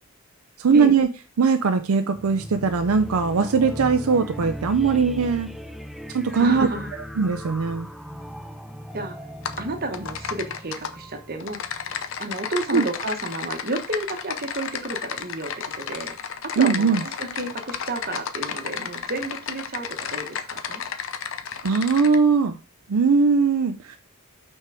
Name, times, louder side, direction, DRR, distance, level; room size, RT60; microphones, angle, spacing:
voice 1, 0.6-1.1 1.4-5.5 6.1-6.7 7.2-7.9 12.7-12.8 16.6-17.0 21.6-22.6 22.9-24.0, right 5 dB, 75° right, 8 dB, 0.5 m, -20 dB
sound 1, 2.1-12.3, equal, ahead, 0.3 m, -38 dB
voice 2, 6.4-6.9 8.9-9.2 9.6-11.6 12.2-16.2 16.5-20.8, right 2 dB, 45° right, 6 dB, 1.1 m, -31 dB
Typing, 9.4-9.6 9.9-10.9 11.4-22.2, left 7 dB, 65° left, 0.6 m, -32 dB
5.9 x 4.5 x 4.7 m, 0.34 s
head